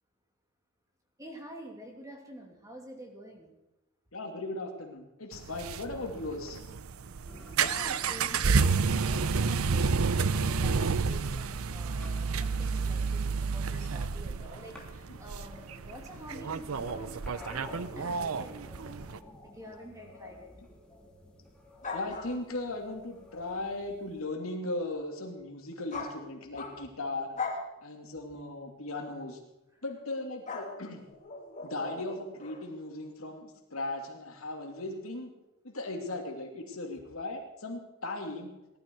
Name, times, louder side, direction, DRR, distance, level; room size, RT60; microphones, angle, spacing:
voice 1, 1.2-3.5 7.3-18.6 19.4-20.5 29.8-29.9, equal, 15° right, 2 dB, 2.7 m, -47 dB
voice 2, 4.1-6.6 20.2-20.3 21.9-27.3 27.8-29.4 29.8-31.0 31.6-35.3 35.6-38.5, left 2 dB, 80° left, 2 dB, 2.7 m, -37 dB
sound 1, 5.3-19.2, right 5 dB, 90° right, 0.6 m, -30 dB
sound 2, 7.2-24.2, left 1 dB, 5° left, 2.5 m, -52 dB
sound 3, 21.8-22.7 25.9-27.0 27.3-27.7 28.9-29.1 30.5-32.6, left 4 dB, 35° left, 2.8 m, -39 dB
18.5 x 12.0 x 4.7 m, 0.98 s
head